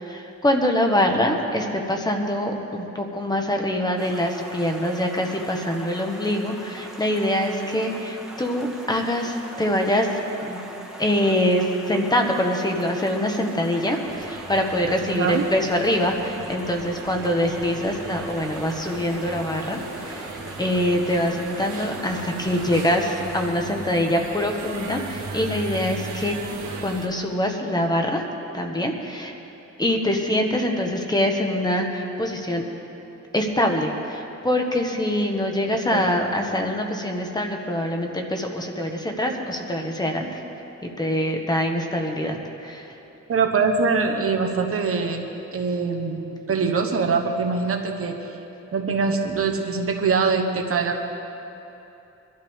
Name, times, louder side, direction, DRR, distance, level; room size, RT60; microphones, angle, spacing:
voice 1, 0.0-10.6 11.0-26.3 26.8-28.2 28.5-29.3 29.8-32.7 33.3-40.4 40.8-42.9, left 1 dB, 15° left, 3 dB, 1.2 m, -24 dB
Stream, 4.0-23.5, right 1 dB, ahead, 1.4 m, -41 dB
sound 1, 14.0-27.1, right 4 dB, 90° right, 1.9 m, -37 dB
voice 2, 15.0-15.4 35.9-36.0 43.3-45.3 45.5-48.2 48.7-51.0, right 5 dB, 50° right, 3 dB, 1.1 m, -23 dB
sound 2, 15.1-23.9, left 1 dB, 45° left, 2.1 m, -44 dB
23.5 x 12.5 x 3.6 m, 3.0 s
wide cardioid pair, 165°, 29 cm